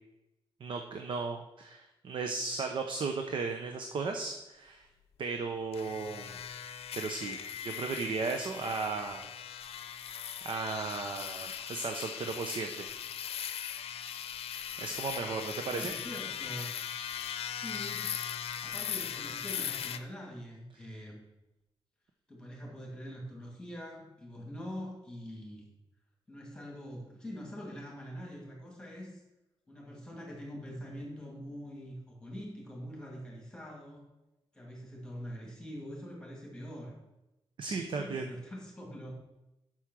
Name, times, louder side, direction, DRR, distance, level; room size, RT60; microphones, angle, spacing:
voice 1, 0.6-4.9 5.2-6.4 6.9-7.4 7.6-9.3 10.0-12.9 14.8-15.9 37.6-38.3, right 4 dB, 55° right, 4 dB, 0.8 m, -35 dB
sound 1, 5.7-20.0, left 9 dB, 90° left, 0.6 m, -39 dB
voice 2, 15.7-16.7 17.5-18.2 18.6-21.2 22.3-25.6 26.3-29.2 29.7-34.1 34.5-37.0 37.6-39.1, equal, 10° left, -2 dB, 2.3 m, -44 dB
8.3 x 6.2 x 6.2 m, 0.94 s
wide cardioid pair, 155°, 10 cm